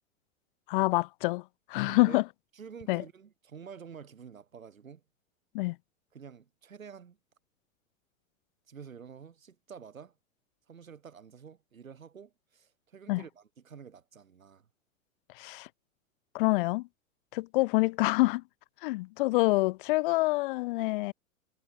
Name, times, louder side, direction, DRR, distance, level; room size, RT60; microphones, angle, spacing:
voice 1, 0.7-1.4 1.7-2.2 2.9-3.0 5.5-5.8 13.1-13.2 15.4-15.7 16.3-16.8 17.3-18.4 18.8-21.1, left 22 dB, 40° left, 0.7 m, -26 dB
voice 2, 1.9-2.2 2.5-5.0 6.1-7.2 8.7-10.1 10.7-14.7, right 7 dB, 75° right, 3.5 m, -49 dB
figure-of-eight pair, 100°, 41 cm